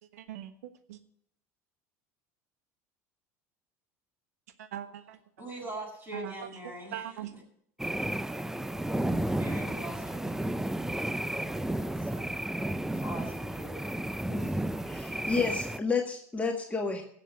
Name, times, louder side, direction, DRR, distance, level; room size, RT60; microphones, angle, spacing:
voice 1, 0.1-1.0 4.6-5.2 6.1-6.3 6.9-7.3 12.2-12.3 12.7-12.8, right 11 dB, 80° right, 10 dB, 1.2 m, -41 dB
voice 2, 5.4-7.4 9.3-10.4 12.0-12.3 12.9-13.9 14.2-14.6, right 1 dB, 25° right, -1 dB, 7.3 m, -42 dB
sound 1, 7.8-15.8, right 1 dB, 5° right, 0.6 m, -32 dB
voice 3, 14.8-17.0, left 4 dB, 15° left, 2 dB, 1.6 m, -30 dB
16.5 x 7.4 x 6.6 m, 0.68 s
hypercardioid pair, 80°, 8 cm